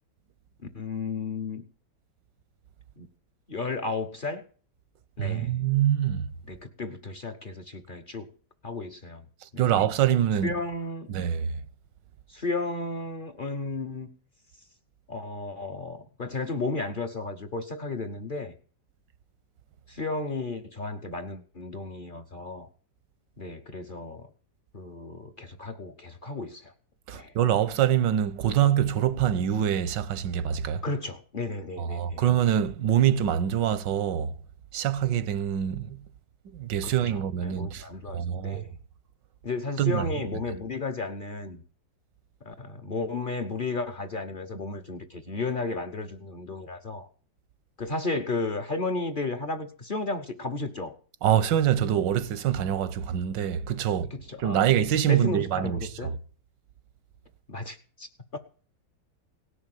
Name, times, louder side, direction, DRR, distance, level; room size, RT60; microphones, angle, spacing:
voice 1, 0.7-1.6 3.0-3.1 3.5-4.4 5.2-5.5 6.5-8.3 8.6-9.2 9.5-9.7 10.4-11.1 12.3-14.1 15.1-18.5 19.9-22.7 23.4-24.3 24.7-26.7 27.1-27.3 30.8-32.2 36.8-38.8 39.4-41.6 42.4-47.1 47.8-50.9 54.1-54.7 55.1-56.1 57.5-58.4, left 3 dB, 35° left, 1.0 m, -33 dB
voice 2, 5.2-6.3 9.4-10.5 11.1-11.6 27.1-30.8 31.8-34.3 34.7-36.0 36.5-38.6 39.8-40.1 51.2-54.1 54.4-56.1, right 10 dB, 85° right, 1.5 m, -25 dB
17.5 x 6.6 x 9.2 m
omnidirectional pair, 1.9 m